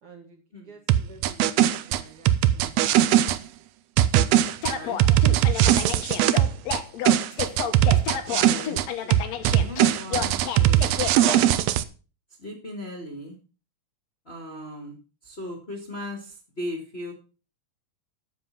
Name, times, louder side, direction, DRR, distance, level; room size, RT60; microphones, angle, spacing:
voice 1, 0.0-2.7 5.9-6.5, right 4 dB, 50° right, 3 dB, 2.1 m, -50 dB
sound 1, 0.9-3.4 4.0-6.8 7.1-8.9 9.1-11.8, right 12 dB, 80° right, 1.5 m, -20 dB
voice 2, 4.3-5.0 8.2-8.8 9.5-11.4 12.4-13.4 14.2-15.0 15.2-17.1, left 1 dB, 25° left, 1 dB, 1.6 m, -38 dB
sound 2, 4.6-11.4, left 8 dB, 65° left, 2.1 m, -31 dB
9.5 x 7.5 x 5.7 m, 0.34 s
omnidirectional pair, 3.7 m